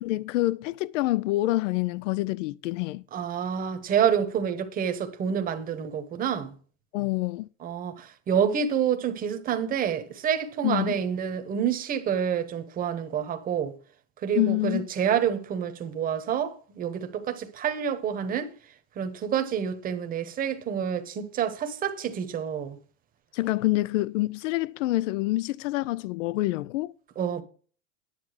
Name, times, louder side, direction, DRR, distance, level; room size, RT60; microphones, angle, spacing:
voice 1, 0.0-3.0 6.9-7.5 10.6-11.0 14.4-14.9 23.3-26.9, left 18 dB, 75° left, 0.5 m, -27 dB
voice 2, 3.1-6.5 7.6-13.7 14.2-18.5 19.0-22.8 27.2-27.4, right 8 dB, 20° right, 1.0 m, -28 dB
10.0 x 7.1 x 4.9 m
supercardioid pair, 150°, 38 cm